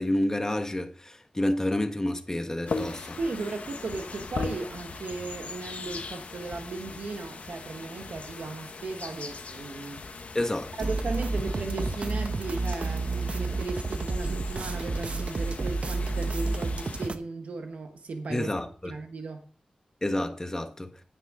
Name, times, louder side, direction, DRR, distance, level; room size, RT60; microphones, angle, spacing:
voice 1, 0.0-3.2 10.3-10.9 18.3-18.9 20.0-20.9, left 1 dB, 25° left, 1.5 m, -29 dB
sound 1, 2.7-17.1, left 4 dB, 75° left, 1.2 m, -39 dB
voice 2, 3.2-10.0 10.8-18.5 18.8-19.4, right 3 dB, 85° right, 1.2 m, -36 dB
sound 2, 10.8-17.2, right 3 dB, 60° right, 0.9 m, -30 dB
9.8 x 9.2 x 3.7 m
cardioid pair, 60°, 2 cm